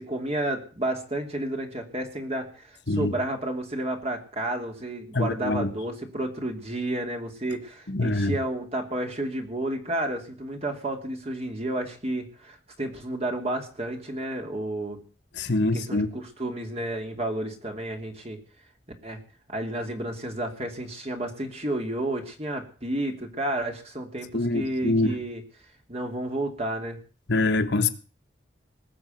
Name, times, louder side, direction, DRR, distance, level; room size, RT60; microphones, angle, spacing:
voice 1, 0.0-15.0 15.7-18.4 19.0-19.2 19.5-25.4 25.9-27.0, right 1 dB, 30° right, 3.0 m, -31 dB
voice 2, 5.1-5.7 7.9-8.3 15.4-16.1 24.3-25.1 27.3-27.9, left 2 dB, 60° left, 1.4 m, -24 dB
20.0 x 6.9 x 9.2 m
head